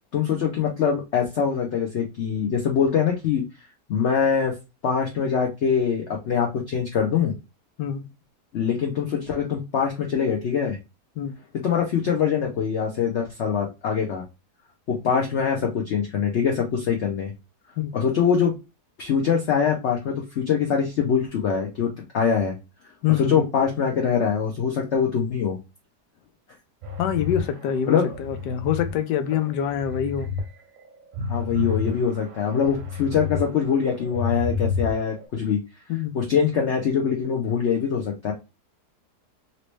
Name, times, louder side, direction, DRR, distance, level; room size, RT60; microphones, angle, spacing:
voice 1, 0.1-3.4 3.9-4.5 4.8-7.3 8.5-10.8 11.6-14.2 14.9-17.3 17.9-18.5 19.0-22.5 23.2-25.6 27.9-28.1 31.3-35.6 36.1-38.3, left 7 dB, 55° left, 0.8 m, -23 dB
voice 2, 23.0-23.4 27.0-30.3 35.9-36.1, left 9 dB, 85° left, 1.2 m, -25 dB
sound 1, 26.8-28.9 29.4-30.4 30.8-33.4 33.8-35.2, left 4 dB, 60° right, 0.9 m, -30 dB
3.0 x 2.9 x 3.1 m
omnidirectional pair, 1.8 m